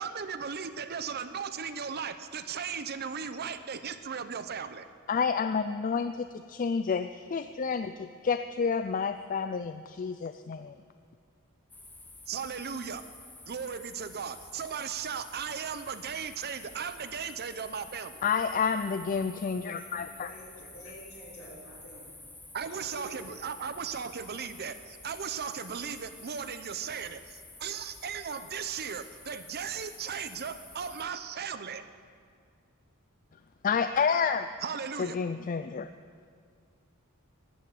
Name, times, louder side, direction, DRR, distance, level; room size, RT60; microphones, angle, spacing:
voice 1, 0.0-4.9 12.3-13.1 13.4-18.2 22.5-31.9 34.6-35.2, right 6 dB, 45° right, 11 dB, 0.7 m, -37 dB
voice 2, 5.1-10.7 18.2-20.3 33.6-34.5 35.0-35.9, left 6 dB, 35° left, 10 dB, 0.4 m, -29 dB
sound 1, 11.7-31.0, left 2 dB, 10° left, 1.0 m, -50 dB
voice 3, 20.1-22.2 22.6-23.3, equal, 65° left, -5 dB, 5.3 m, -49 dB
15.5 x 11.0 x 7.8 m, 2.1 s
head